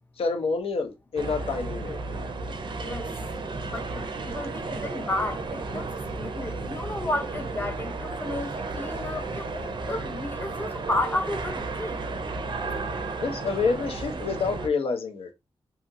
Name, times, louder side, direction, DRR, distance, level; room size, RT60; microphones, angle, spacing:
voice 1, 0.2-2.0 13.2-15.3, left 4 dB, 75° left, 0.6 m, -28 dB
sound 1, 1.2-14.7, right 3 dB, 50° right, 0.4 m, -33 dB
voice 2, 3.7-5.9 6.2-12.0, left 1 dB, 20° left, 0.6 m, -32 dB
2.7 x 2.4 x 2.5 m
wide cardioid pair, 100°, 10 cm